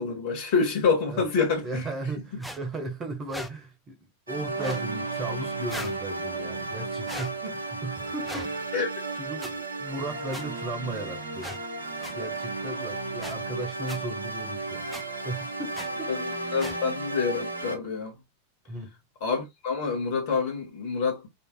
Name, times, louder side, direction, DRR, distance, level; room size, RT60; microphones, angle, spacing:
voice 1, 0.0-1.8 8.7-8.9 13.8-13.9 16.1-16.2 16.5-18.1 19.2-21.3, left 5 dB, 50° left, 1.9 m, -27 dB
voice 2, 1.6-8.7 9.1-11.6 12.1-16.5 18.6-18.9, right 2 dB, 25° right, 1.4 m, -36 dB
sound 1, 2.4-2.6 3.3-3.5 4.5-4.9 5.7-6.0 7.0-7.3 8.2-8.5 9.4-9.5 10.3-10.4 11.4-11.6 12.0-12.1 13.2-13.3 13.9-14.0 14.9-15.0 15.7-15.9 16.6-16.8, left 1 dB, ahead, 0.7 m, -38 dB
sound 2, 4.3-17.8, right 3 dB, 75° right, 1.0 m, -34 dB
5.3 x 3.3 x 2.2 m
figure-of-eight pair, 90°, 0 cm